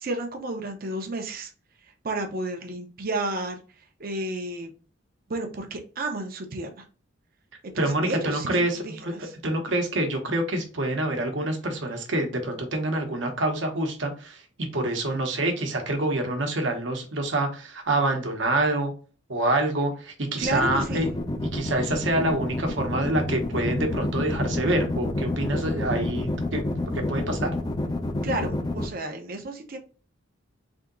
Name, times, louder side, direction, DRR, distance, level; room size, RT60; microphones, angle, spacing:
voice 1, 0.0-1.5 2.0-3.6 4.0-4.7 5.3-6.8 7.6-9.3 20.4-21.1 28.2-29.8, right 2 dB, 50° right, 4 dB, 0.7 m, -32 dB
voice 2, 7.7-9.1 9.4-18.9 19.3-21.1 21.4-26.6 26.9-27.5, right 1 dB, 65° right, 3 dB, 1.0 m, -26 dB
sound 1, 20.4-28.9, left 2 dB, 20° left, 0.5 m, -28 dB
3.5 x 2.8 x 3.8 m, 0.37 s
head